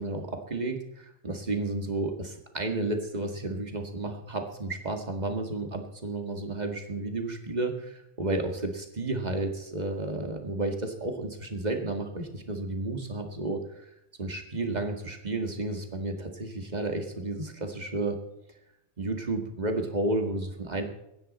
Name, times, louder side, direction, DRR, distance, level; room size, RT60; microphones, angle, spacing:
voice 1, 0.0-13.9 14.2-18.2 19.0-20.8, right 2 dB, 35° right, 4 dB, 2.0 m, -32 dB
23.5 x 10.0 x 4.2 m, 0.81 s
omnidirectional pair, 1.3 m